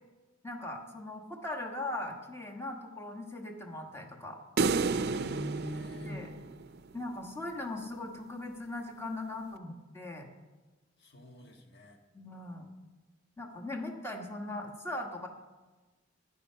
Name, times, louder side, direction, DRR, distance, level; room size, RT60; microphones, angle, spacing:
voice 1, 0.4-4.4 6.0-6.3 6.9-10.3 12.1-12.7 13.4-15.3, left 2 dB, 15° left, 2 dB, 1.4 m, -39 dB
sound 1, 4.6-7.0, right 4 dB, 55° right, 0.5 m, -31 dB
voice 2, 5.0-6.2 11.0-12.0, equal, 60° left, 3 dB, 1.6 m, -43 dB
12.0 x 9.9 x 5.7 m, 1.2 s
head